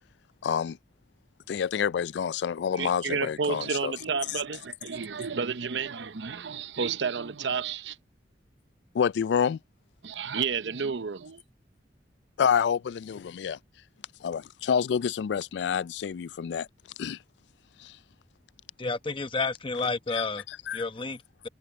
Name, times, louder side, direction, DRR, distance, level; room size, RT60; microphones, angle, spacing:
voice 1, 0.4-0.8 1.5-3.9 4.3-4.4 8.9-9.6 12.4-13.6 14.2-16.7 17.0-17.2 17.8-18.0 20.1-20.8, left 7 dB, 65° left, 0.3 m, -28 dB
voice 2, 2.8-8.0 10.0-11.4, right 5 dB, 75° right, 0.7 m, -31 dB
voice 3, 18.8-20.4 20.7-21.5, left 3 dB, 30° left, 0.9 m, -31 dB
head